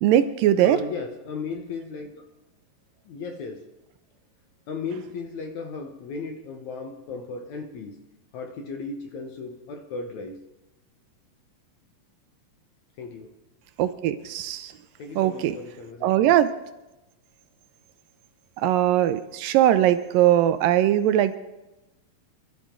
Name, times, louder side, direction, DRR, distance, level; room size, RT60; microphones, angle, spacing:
voice 1, 0.0-0.8 13.8-14.7 15.2-15.6 16.0-16.5 18.6-21.4, right 12 dB, 80° right, 12 dB, 2.2 m, -20 dB
voice 2, 0.6-2.3 3.0-3.7 4.7-10.4 13.0-13.4 15.0-16.3, left 4 dB, 65° left, 4 dB, 2.0 m, -36 dB
27.5 x 12.0 x 3.7 m, 0.98 s
omnidirectional pair, 4.2 m